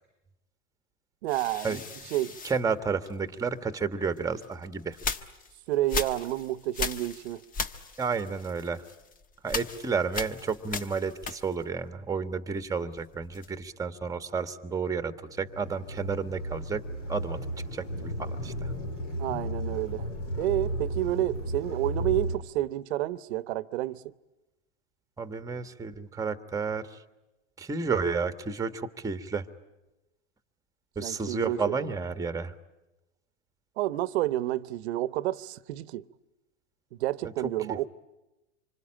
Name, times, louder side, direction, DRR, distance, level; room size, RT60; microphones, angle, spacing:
voice 1, 1.2-1.8 2.1-2.4 5.7-7.4 19.2-24.1 31.0-31.9 33.8-36.0 36.9-37.9, right 15 dB, 60° right, 1.0 m, -30 dB
sound 1, 1.3-3.5 4.1-11.8 12.1-13.7, left 4 dB, 25° left, 1.2 m, -38 dB
voice 2, 2.4-5.0 8.0-8.8 9.4-17.4 17.7-18.7 25.2-27.0 27.6-29.5 30.9-32.5 37.7-37.9, right 5 dB, 10° right, 1.4 m, -31 dB
sound 2, 15.3-22.4, right 1 dB, 80° left, 7.9 m, -34 dB
26.5 x 25.0 x 8.8 m
hypercardioid pair, 120°, 36 cm